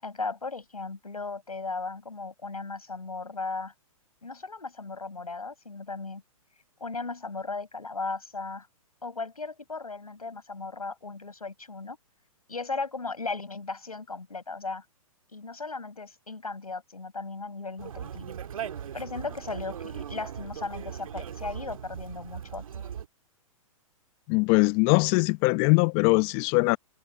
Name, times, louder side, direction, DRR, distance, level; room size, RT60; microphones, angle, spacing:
voice 1, 0.0-3.7 4.2-6.2 6.8-8.7 9.0-12.0 12.5-14.8 15.3-18.3 18.9-22.8, left 3 dB, 90° left, 7.7 m, -36 dB
Conversation, 17.8-23.1, right 8 dB, 70° right, 1.8 m, -39 dB
voice 2, 24.3-26.8, left 31 dB, 35° left, 0.8 m, -22 dB
hypercardioid pair, 120°, 18 cm